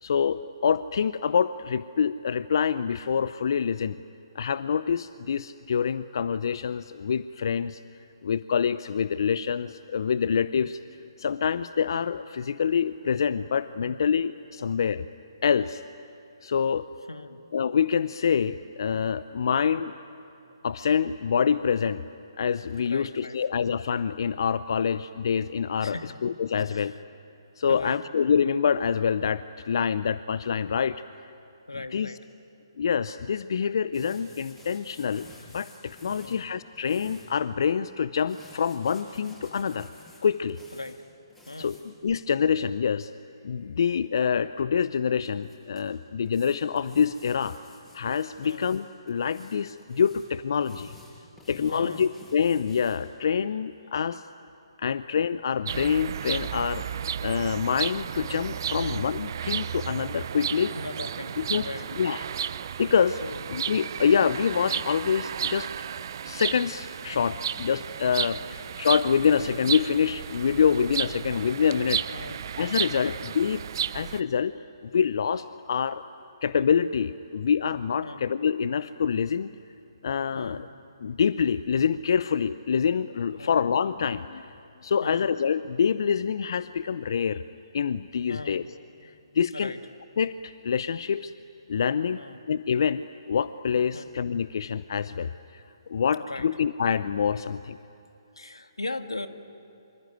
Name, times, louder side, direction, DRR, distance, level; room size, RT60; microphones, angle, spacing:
voice 1, 0.0-4.0 4.3-7.8 8.2-10.8 11.2-15.0 15.4-15.8 16.4-16.9 17.5-19.9 20.6-22.0 22.4-26.9 27.6-31.0 31.9-32.1 32.8-35.3 35.5-39.9 40.2-40.6 41.6-41.8 42.0-43.1 43.4-47.6 47.9-50.9 51.5-54.2 54.8-56.9 57.2-60.7 61.4-61.7 62.0-62.2 62.8-63.2 63.5-65.7 66.3-72.0 72.6-73.6 73.9-74.5 74.9-76.0 76.4-79.5 80.0-80.7 81.0-84.5 84.8-87.4 87.7-88.6 89.0-89.7 90.2-91.3 91.7-92.2 92.5-95.6 95.9-97.8, left 7 dB, 60° left, 14 dB, 0.6 m, -26 dB
voice 2, 17.1-17.4 19.5-19.8 22.8-23.4 25.8-26.2 26.5-27.0 27.6-28.0 31.7-32.2 36.1-36.5 40.7-41.0 41.5-41.8 48.4-48.7 51.7-52.1 58.8-59.1 60.7-61.9 63.2-63.4 68.4-68.6 72.1-72.4 72.9-73.2 78.0-78.2 80.3-80.7 83.4-83.6 85.0-85.3 88.3-88.7 89.5-89.8 92.1-92.4 93.9-94.1 96.2-96.5 98.4-99.3, left 2 dB, 90° left, 8 dB, 1.9 m, -39 dB
sound 1, 33.9-37.3 38.2-40.9 41.3-41.8 44.2-44.3 45.2-45.8 46.2-48.8 49.1-53.0, left 1 dB, 5° left, 7.8 m, -52 dB
sound 2, 55.6-74.2, right 8 dB, 50° right, 0.6 m, -33 dB
25.5 x 25.0 x 9.3 m, 2.9 s
figure-of-eight pair, 140°, 3 cm